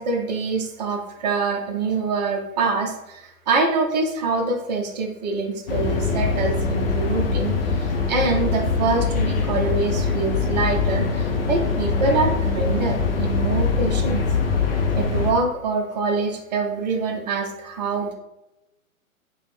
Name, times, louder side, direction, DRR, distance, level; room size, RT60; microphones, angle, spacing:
voice 1, 0.0-14.2 14.9-18.1, right 3 dB, 30° right, 2 dB, 0.5 m, -25 dB
sound 1, 5.7-15.3, left 4 dB, 45° left, 0.5 m, -23 dB
4.2 x 2.1 x 3.5 m, 0.96 s
hypercardioid pair, 145°, 43 cm